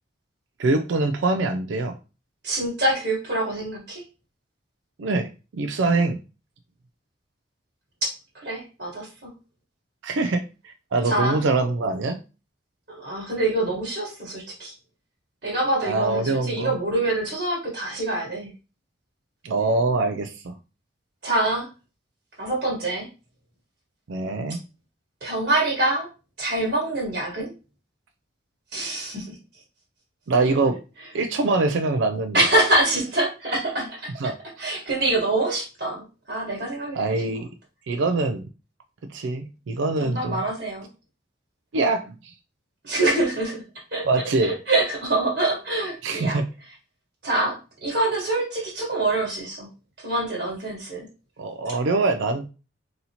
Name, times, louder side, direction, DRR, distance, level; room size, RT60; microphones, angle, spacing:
voice 1, 0.6-1.9 5.0-6.2 10.0-12.2 15.8-16.7 19.4-20.5 24.1-24.6 30.3-30.8 31.1-32.4 34.2-34.3 36.9-37.5 37.9-38.5 39.1-40.4 41.7-42.3 44.0-44.5 46.0-46.5 51.4-52.5, right 3 dB, 85° right, 7 dB, 0.4 m, -24 dB
voice 2, 2.4-4.0 8.0-9.3 11.0-11.4 12.9-14.7 15.4-18.5 21.2-21.7 22.4-23.1 25.2-26.1 26.4-27.5 28.7-29.4 32.3-34.3 34.6-37.4 40.0-40.9 42.8-43.6 43.9-44.0 44.4-46.4 47.2-49.7 50.0-51.1, right 2 dB, 60° right, -3 dB, 1.4 m, -25 dB
4.0 x 2.8 x 2.8 m, 0.31 s
head